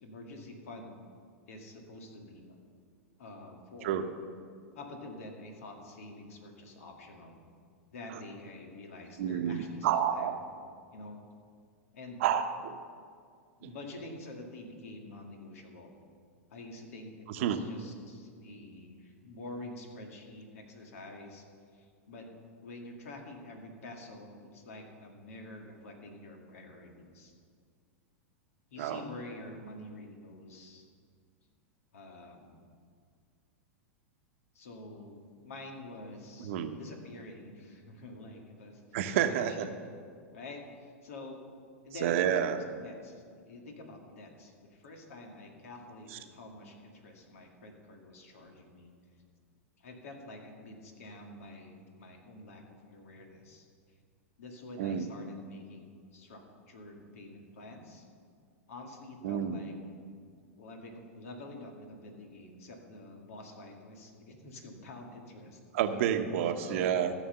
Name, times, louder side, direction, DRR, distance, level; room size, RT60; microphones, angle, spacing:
voice 1, 0.0-0.9 1.5-2.6 3.2-4.0 4.7-7.4 7.9-10.5 10.9-11.2 11.9-12.2 13.6-15.9 16.5-21.5 21.7-22.3 22.6-27.3 28.7-30.9 31.9-32.7 34.5-39.7 40.3-41.4 41.8-48.9 49.8-53.7 54.4-58.1 58.7-59.7 60.6-65.6 66.6-67.0, left 2 dB, 70° left, 2 dB, 2.2 m, -47 dB
voice 2, 9.2-10.4 12.2-12.8 13.6-13.7 17.3-17.6 28.8-29.0 36.4-36.8 38.9-39.7 42.0-42.6 46.1-46.2 54.8-55.1 59.2-59.6 65.7-67.1, right 9 dB, 60° right, 8 dB, 0.9 m, -29 dB
15.0 x 6.5 x 6.7 m, 2.1 s
hypercardioid pair, 100°, 8 cm